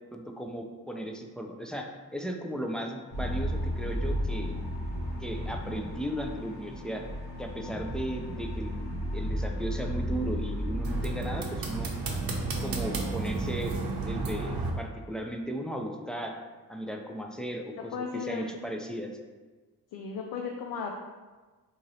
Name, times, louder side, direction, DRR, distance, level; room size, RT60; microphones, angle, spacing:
voice 1, 0.1-4.5 5.2-7.1 7.4-8.8 9.1-11.9 12.6-16.3 16.7-19.1, equal, ahead, 2 dB, 0.4 m, -36 dB
sound 1, 3.1-11.2, equal, 85° left, 1.0 m, -33 dB
sound 2, 10.8-14.7, right 3 dB, 60° right, 0.7 m, -32 dB
voice 2, 17.7-18.6 19.9-20.9, left 5 dB, 65° left, 2 dB, 0.5 m, -36 dB
3.0 x 2.6 x 4.0 m, 1.3 s
cardioid pair, 55°, 39 cm